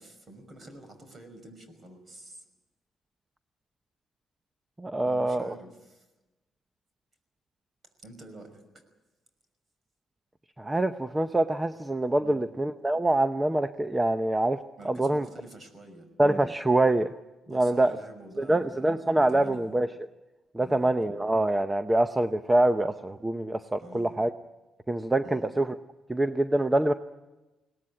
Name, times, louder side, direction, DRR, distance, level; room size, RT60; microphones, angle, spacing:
voice 1, 0.0-2.4 5.0-6.1 8.0-8.9 12.2-12.4 14.8-16.1 17.4-19.0 19.3-19.7 20.6-20.9 23.8-24.2 25.2-25.5, right 1 dB, 40° right, 8 dB, 5.7 m, -48 dB
voice 2, 4.8-5.5 10.6-14.6 14.8-15.3 16.2-17.1 17.5-18.0 18.4-19.9 20.5-24.3 24.9-25.7 26.1-26.9, right 1 dB, 15° right, 10 dB, 0.8 m, -25 dB
22.5 x 18.0 x 9.9 m, 1.1 s
cardioid pair, 90°, 0 cm